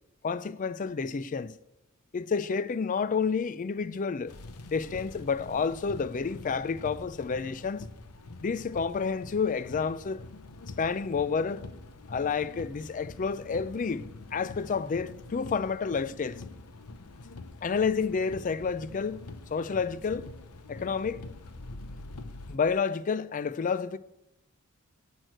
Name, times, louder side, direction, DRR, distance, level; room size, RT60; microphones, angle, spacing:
voice 1, 0.2-1.6 2.1-4.3 4.7-7.9 8.4-10.2 10.8-11.6 12.1-16.4 17.6-19.2 19.5-20.3 20.7-21.2 22.5-24.0, left 5 dB, 35° left, 0.4 m, -30 dB
sound 1, 4.3-22.6, left 2 dB, 90° left, 0.8 m, -45 dB
10.5 x 6.4 x 7.8 m
head